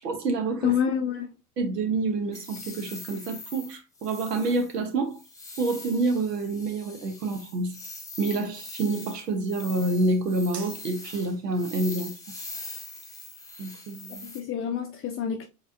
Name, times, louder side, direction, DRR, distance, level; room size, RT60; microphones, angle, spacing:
voice 1, 0.0-0.7 1.6-5.2 5.6-7.8 8.2-12.2 13.6-14.3, right 3 dB, 85° right, 1.2 m, -28 dB
voice 2, 0.6-1.3 14.2-15.5, left 8 dB, 30° left, 0.5 m, -27 dB
sound 1, 2.3-14.4, left 2 dB, 5° left, 1.2 m, -43 dB
4.6 x 3.6 x 2.7 m
hypercardioid pair, 85°, 47 cm